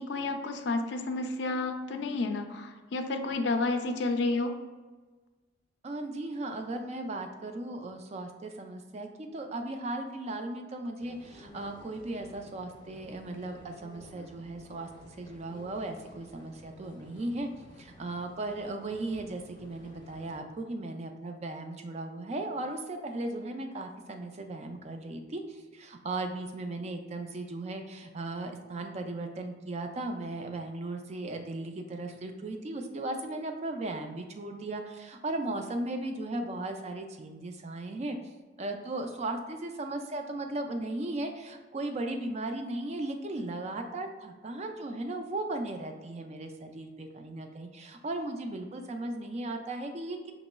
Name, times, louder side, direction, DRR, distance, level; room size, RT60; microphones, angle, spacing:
voice 1, 0.0-4.5, left 3 dB, 65° left, 6 dB, 0.4 m, -30 dB
voice 2, 5.8-14.9 15.2-17.5 17.8-38.2 38.6-50.3, right 2 dB, 35° right, 5 dB, 0.4 m, -36 dB
sound 1, 11.0-20.4, left 1 dB, 25° left, 0.7 m, -53 dB
5.1 x 3.0 x 2.2 m, 1.3 s
head